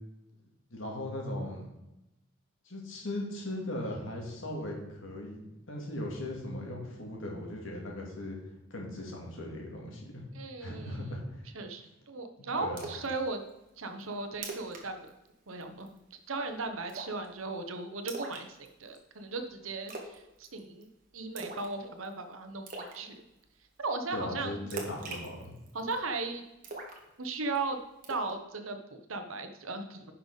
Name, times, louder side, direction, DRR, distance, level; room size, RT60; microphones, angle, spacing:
voice 1, 0.7-1.6 2.7-5.4 5.7-8.3 8.7-10.2 10.6-11.4 12.4-12.9 24.1-25.5, left 1 dB, 75° left, -1 dB, 2.3 m, -38 dB
voice 2, 10.3-11.0 11.5-13.4 13.8-15.1 15.5-18.5 18.8-20.9 21.1-23.1 23.8-24.6 25.7-26.4 27.2-27.8 28.1-30.1, right 3 dB, 90° right, 6 dB, 1.0 m, -37 dB
Splash splatter, 12.8-13.1 13.5-13.6 14.0-14.1 14.3-14.8 15.1-15.3 15.6-16.0 16.9-17.3 18.1-19.0 19.9-20.2 20.4-20.8 21.4-21.7 22.0-22.1 22.7-23.0 24.7-26.0 26.6-27.6 28.0-28.3, right 2 dB, 45° right, 1.5 m, -41 dB
10.5 x 5.7 x 4.1 m, 0.94 s
head